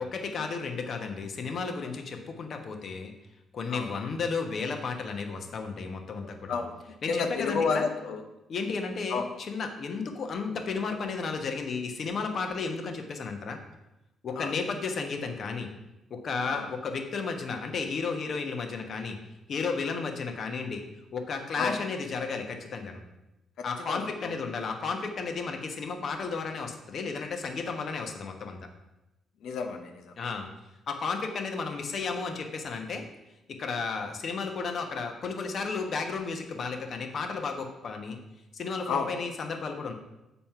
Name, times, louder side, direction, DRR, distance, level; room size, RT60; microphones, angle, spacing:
voice 1, 0.0-3.1 3.5-6.6 7.0-7.8 8.5-13.6 14.2-15.7 16.1-19.2 19.5-20.8 21.1-23.0 23.6-28.6 30.2-30.5 30.9-33.0 33.5-38.2 38.5-39.9, left 4 dB, 55° left, 4 dB, 1.1 m, -33 dB
voice 2, 3.7-4.1 6.5-6.7 7.1-8.2 9.1-9.3 14.4-14.5 16.5-16.7 21.6-21.8 23.9-24.4 29.4-30.1 38.9-39.1, left 5 dB, 80° left, 5 dB, 0.9 m, -31 dB
7.3 x 4.2 x 5.8 m, 0.94 s
cardioid pair, 90°, 0 cm